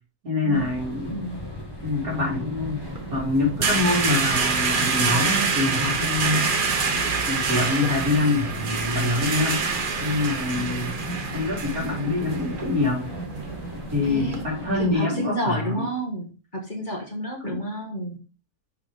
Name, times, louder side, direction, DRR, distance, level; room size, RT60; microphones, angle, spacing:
voice 1, 0.2-1.3 1.8-2.8 3.1-6.5 7.3-9.6 10.0-11.0 11.3-13.1 13.9-15.9 17.4-17.6, left 2 dB, 70° right, -3 dB, 3.4 m, -25 dB
sound 1, 0.5-14.9, equal, 15° left, 1.2 m, -36 dB
voice 2, 1.1-1.4 14.1-14.4 14.8-18.2, right 1 dB, 35° left, 0 dB, 1.6 m, -30 dB
sound 2, 2.8-14.4, right 4 dB, 40° right, 0.9 m, -27 dB
6.1 x 4.7 x 5.1 m, 0.34 s
omnidirectional pair, 1.6 m